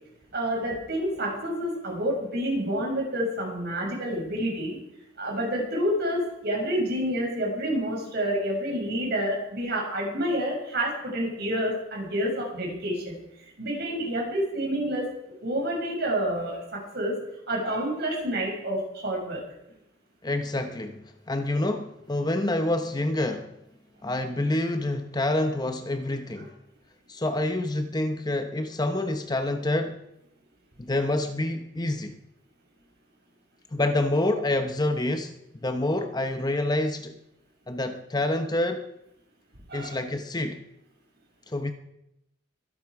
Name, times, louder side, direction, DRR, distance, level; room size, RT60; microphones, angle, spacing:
voice 1, 0.3-4.8 5.2-13.2 13.6-15.1 15.4-17.1 17.5-19.4 39.7-40.0, equal, 55° right, -1 dB, 6.5 m, -28 dB
voice 2, 20.2-23.5 24.0-26.5 27.1-30.0 30.8-32.1 33.7-35.3 35.6-37.2 37.7-38.8 39.7-40.6 41.5-41.7, left 1 dB, 20° left, 7 dB, 0.8 m, -27 dB
23.0 x 11.0 x 4.8 m, 0.83 s
head